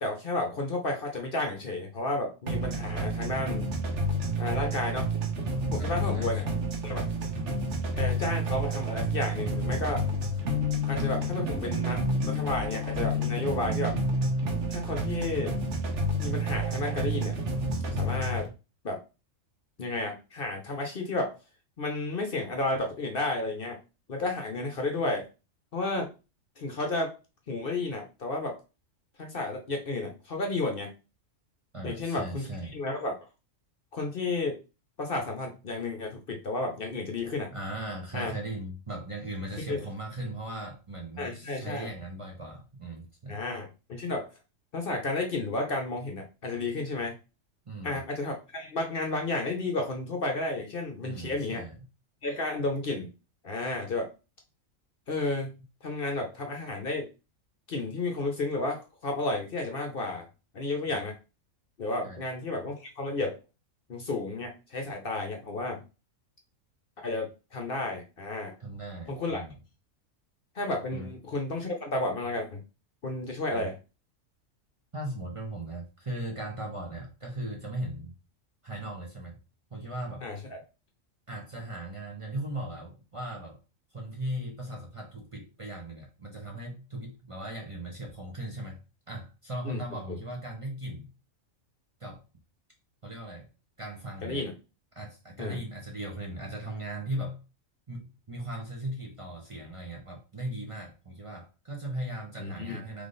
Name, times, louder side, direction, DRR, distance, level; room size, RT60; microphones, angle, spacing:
voice 1, 0.0-3.7 4.4-5.1 5.7-6.4 6.8-7.0 8.0-10.1 10.9-14.0 14.7-15.6 16.2-17.3 18.0-18.5 18.8-19.0 19.8-21.3 21.8-23.8 24.1-25.3 25.7-26.1 26.6-27.1 27.5-28.6 29.2-30.9 31.8-33.1 33.9-34.6 35.0-37.5 38.1-38.3 39.7-39.8 41.2-41.9 43.3-44.3 44.7-47.2 47.8-51.6 52.2-53.1 53.4-54.1 55.1-55.5 55.8-57.1 57.7-60.3 60.5-61.2 61.8-63.4 63.9-65.8 67.0-68.5 69.1-69.4 70.5-72.6 73.0-73.8 80.2-80.6 89.6-89.8 94.2-94.5 95.4-95.6 102.4-102.8, left 2 dB, 50° left, 3 dB, 0.9 m, -32 dB
sound 1, 2.5-18.5, right 1 dB, 65° right, 1.2 m, -30 dB
voice 2, 5.8-6.6 31.7-32.8 37.5-43.4 47.7-48.0 51.0-51.8 60.9-61.0 62.0-62.2 68.6-69.5 70.9-71.1 73.5-73.7 74.9-78.1 78.6-79.4 79.7-80.3 81.3-83.6 83.9-88.8 89.1-91.1 92.0-92.2 93.0-93.5 93.8-94.4 94.9-97.4 97.9-103.1, right 1 dB, 25° right, 0 dB, 0.9 m, -38 dB
3.6 x 3.3 x 3.8 m, 0.30 s
omnidirectional pair, 1.4 m